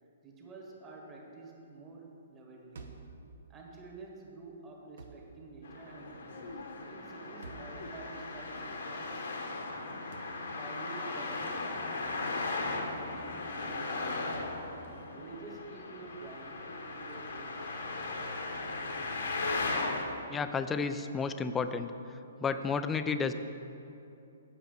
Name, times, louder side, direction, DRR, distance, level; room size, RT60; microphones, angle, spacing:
voice 1, 0.2-2.9 3.5-6.6 6.9-9.2 10.5-14.5 15.1-17.7, right 3 dB, 20° right, 0 dB, 1.5 m, -49 dB
sound 1, 2.7-3.2 5.0-5.3 7.4-7.8 10.1-10.4 12.3-12.5 14.3-14.6, right 4 dB, 75° right, 0.9 m, -49 dB
Traffic noise roadway noise, 5.6-20.0, left 3 dB, 75° left, 1.2 m, -37 dB
voice 2, 20.3-21.9 22.4-23.3, left 5 dB, 15° left, 10 dB, 0.4 m, -31 dB
8.1 x 5.5 x 6.7 m, 2.8 s
hypercardioid pair, 140°, 0 cm